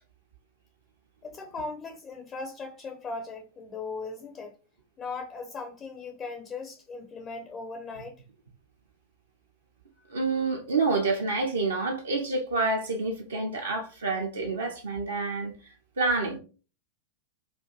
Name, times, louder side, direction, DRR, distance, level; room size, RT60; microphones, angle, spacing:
voice 1, 1.2-4.5 5.0-8.2, left 3 dB, 25° left, 0.4 m, -38 dB
voice 2, 10.1-15.5 16.0-16.4, right 3 dB, 70° right, 0.5 m, -28 dB
2.5 x 2.3 x 2.9 m
figure-of-eight pair, 90°, 0 cm